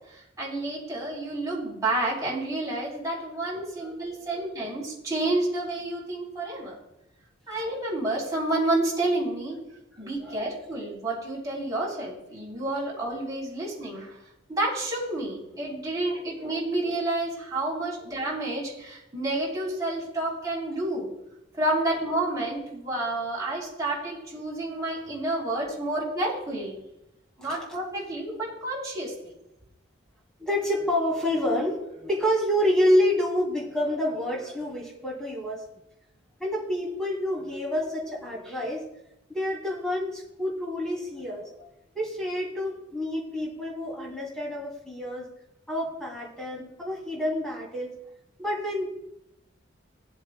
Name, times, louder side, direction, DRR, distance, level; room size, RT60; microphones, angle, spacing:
voice 1, 0.1-6.8 7.5-9.6 10.0-14.1 14.5-21.1 21.6-26.8 27.4-29.3, right 2 dB, 20° right, -5 dB, 3.5 m, -30 dB
voice 2, 3.5-3.9 4.3-4.5 7.5-7.6 10.0-10.5 16.4-16.9 24.7-25.0 27.4-27.6 30.4-35.6 36.4-38.8 39.3-41.7 41.9-45.3 45.7-47.9 48.4-48.9, left 1 dB, 5° left, -4 dB, 2.7 m, -28 dB
18.5 x 7.7 x 2.2 m, 0.86 s
head